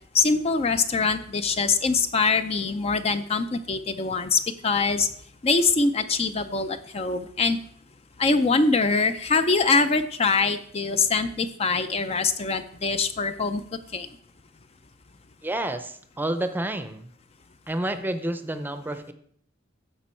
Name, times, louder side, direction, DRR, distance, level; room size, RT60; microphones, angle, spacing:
voice 1, 0.1-5.1 5.4-7.6 8.2-13.6 13.9-14.1, left 4 dB, 30° left, 9 dB, 0.5 m, -23 dB
voice 2, 15.4-17.1 17.7-19.1, right 1 dB, 10° right, 9 dB, 0.6 m, -29 dB
14.5 x 5.2 x 4.4 m, 0.62 s
head